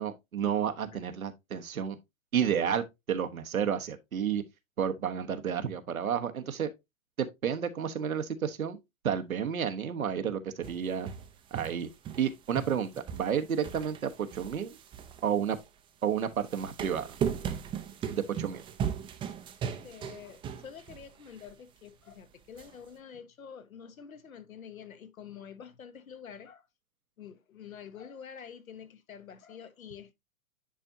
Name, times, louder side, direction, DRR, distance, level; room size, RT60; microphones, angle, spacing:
voice 1, 0.0-2.0 2.3-4.4 4.8-6.7 7.2-8.8 9.0-11.1 11.5-11.9 12.2-14.8 15.2-15.6 16.0-17.1 18.1-18.6, right 8 dB, 85° right, 1.2 m, -31 dB
sound 1, 10.6-12.3 12.5-15.7 16.3-21.0 21.4-21.5 22.6-22.7, right 8 dB, 10° right, 0.5 m, -37 dB
voice 2, 19.6-26.7 27.2-30.1, left 7 dB, 80° left, 1.2 m, -47 dB
9.9 x 4.4 x 2.7 m
hypercardioid pair, 120°, 41 cm